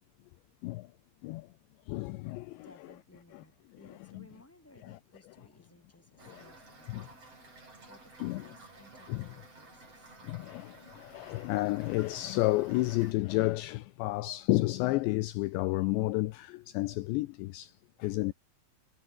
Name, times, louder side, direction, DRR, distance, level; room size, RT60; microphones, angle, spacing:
voice 1, 1.9-2.7 3.9-4.2 4.8-5.0 6.3-6.4 6.9-7.1 8.2-8.5 9.1-9.3 10.2-17.7 18.0-18.3, left 20 dB, 80° left, 2.6 m, -31 dB
voice 2, 2.5-10.2, left 1 dB, 5° left, 6.4 m, -60 dB
Toilet flush / Fill (with liquid), 6.2-13.1, right 3 dB, 30° right, 8.8 m, -53 dB
omnidirectional pair, 5.8 m